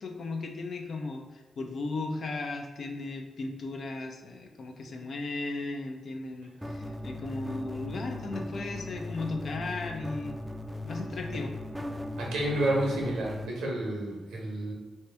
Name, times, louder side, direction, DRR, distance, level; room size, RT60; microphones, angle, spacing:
voice 1, 0.0-10.4 10.8-11.5, left 3 dB, 60° left, 3 dB, 0.5 m, -36 dB
sound 1, 6.6-13.5, left 1 dB, 5° right, 0.4 m, -38 dB
voice 2, 12.2-14.7, right 1 dB, 80° right, -2 dB, 0.9 m, -30 dB
3.3 x 2.7 x 3.3 m, 1.2 s
hypercardioid pair, 40°, 0 cm